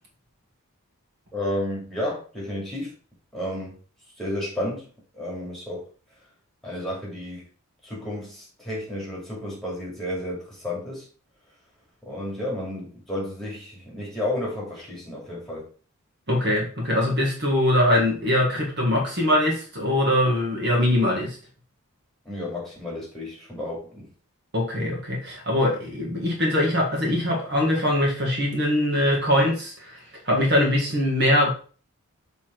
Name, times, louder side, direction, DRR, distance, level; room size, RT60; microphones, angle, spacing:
voice 1, 1.3-2.9 3.3-3.8 4.2-4.9 5.1-5.8 6.6-7.4 7.8-11.1 12.0-15.6 22.2-24.1, left 1 dB, ahead, -4 dB, 2.6 m, -32 dB
voice 2, 16.3-21.4 24.5-31.5, left 1 dB, 50° right, -1 dB, 1.9 m, -22 dB
7.0 x 3.6 x 4.6 m, 0.39 s
head